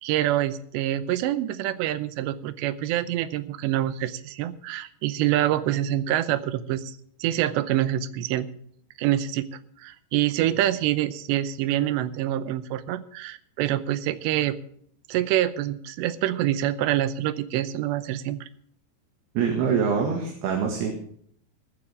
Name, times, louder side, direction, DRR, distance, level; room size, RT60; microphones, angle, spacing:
voice 1, 0.0-8.5 9.0-9.5 9.8-14.6 15.1-18.5, right 13 dB, 90° right, 14 dB, 3.0 m, -26 dB
voice 2, 19.4-20.9, right 6 dB, 70° right, 2 dB, 3.8 m, -24 dB
16.0 x 14.5 x 3.6 m, 0.63 s
omnidirectional pair, 5.0 m